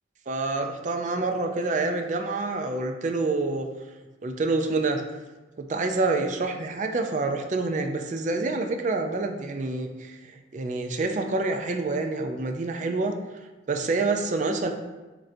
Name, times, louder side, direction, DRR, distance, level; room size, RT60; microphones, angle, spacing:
voice 1, 0.3-3.7 4.2-5.1 5.6-13.2 13.7-14.7, right 3 dB, 40° right, 5 dB, 0.4 m, -27 dB
7.4 x 2.6 x 2.6 m, 1.2 s
head